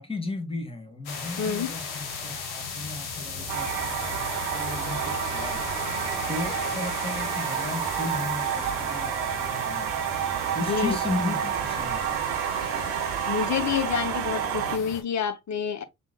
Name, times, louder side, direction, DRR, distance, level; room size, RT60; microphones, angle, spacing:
voice 1, 0.0-6.0 6.3-10.1 10.5-12.2, left 3 dB, 15° left, 1.4 m, -35 dB
sound 1, 1.1-15.0, left 4 dB, 80° left, 1.2 m, -36 dB
voice 2, 1.4-1.7 10.7-11.0 13.3-15.8, left 7 dB, 45° left, 0.8 m, -28 dB
sound 2, 3.5-14.8, right 10 dB, 85° right, 0.5 m, -29 dB
5.2 x 3.7 x 2.2 m
hypercardioid pair, 45°, 38 cm